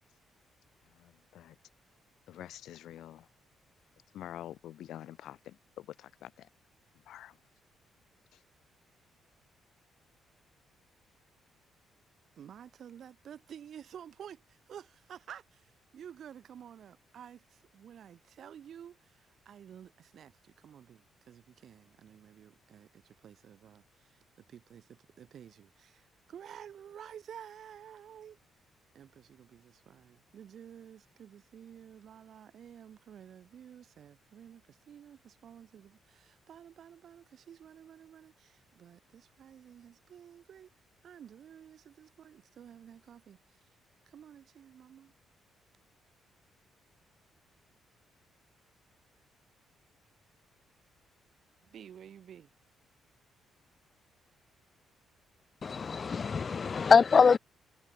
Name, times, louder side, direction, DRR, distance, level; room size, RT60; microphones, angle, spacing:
voice 1, 0.8-1.6 2.3-3.3 4.1-6.5 6.9-7.4 8.3-8.4, left 12 dB, 80° left, 1.4 m, -47 dB
voice 2, 12.4-28.4 28.9-40.7 41.0-43.6 44.1-45.1 51.6-52.5, right 9 dB, 60° right, 3.5 m, -51 dB
voice 3, 55.6-57.4, left 5 dB, 40° left, 0.4 m, -23 dB
cardioid pair, 90°, 0 cm